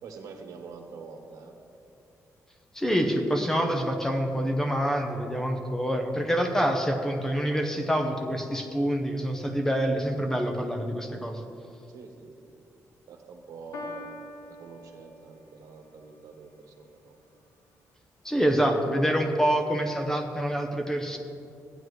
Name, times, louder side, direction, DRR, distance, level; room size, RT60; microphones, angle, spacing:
voice 1, 0.0-1.6 11.9-12.3 12.6-12.7 13.1-14.1 14.5-17.2, right 5 dB, 80° right, 4 dB, 1.2 m, -46 dB
voice 2, 2.7-11.4 18.2-21.2, equal, 10° left, 4 dB, 0.8 m, -26 dB
Piano, 13.7-15.7, left 2 dB, 65° left, 1.1 m, -43 dB
15.0 x 9.1 x 3.2 m, 2.7 s
wide cardioid pair, 155°, 6 cm